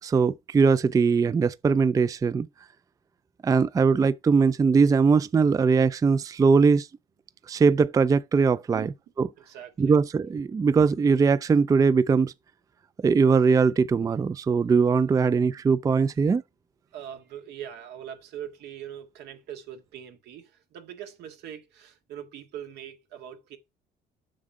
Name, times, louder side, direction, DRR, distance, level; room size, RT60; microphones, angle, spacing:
voice 1, 0.0-2.5 3.4-6.9 7.5-8.9 9.2-9.3 9.8-12.3 13.0-16.4, right 5 dB, 20° right, 0.4 m, -21 dB
voice 2, 9.5-10.0 16.9-23.6, right 10 dB, 80° right, 1.9 m, -41 dB
7.4 x 6.4 x 4.7 m
cardioid pair, 110°, 17 cm